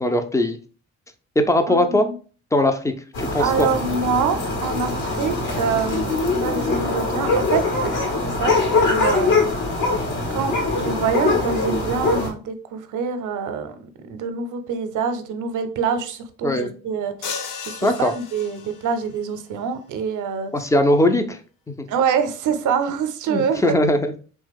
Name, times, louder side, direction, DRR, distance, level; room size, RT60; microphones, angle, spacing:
voice 1, 0.0-0.6 1.4-2.1 2.5-3.7 16.4-16.7 17.8-18.1 20.5-21.4 23.3-24.1, left 1 dB, 10° left, 7 dB, 0.3 m, -20 dB
voice 2, 1.7-2.2 3.4-7.9 8.2-9.5 10.3-20.7 21.9-23.8, right 6 dB, 50° right, 8 dB, 0.6 m, -26 dB
sound 1, 3.1-12.3, left 3 dB, 70° left, 0.9 m, -22 dB
sound 2, 17.2-19.0, left 6 dB, 55° left, 0.6 m, -34 dB
2.9 x 2.2 x 3.3 m, 0.39 s
hypercardioid pair, 45°, 39 cm